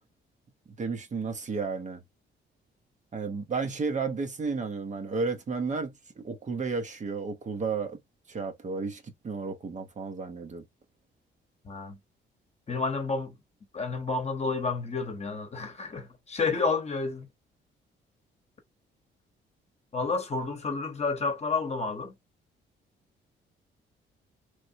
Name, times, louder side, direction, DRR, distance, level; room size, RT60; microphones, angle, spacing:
voice 1, 0.8-2.0 3.1-8.0 8.3-10.6, right 4 dB, 35° right, 0.8 m, -32 dB
voice 2, 11.6-12.0 12.7-13.3 13.7-17.3 19.9-22.1, left 4 dB, 35° left, 1.0 m, -30 dB
3.2 x 2.5 x 2.7 m
cardioid pair, 90°, 20 cm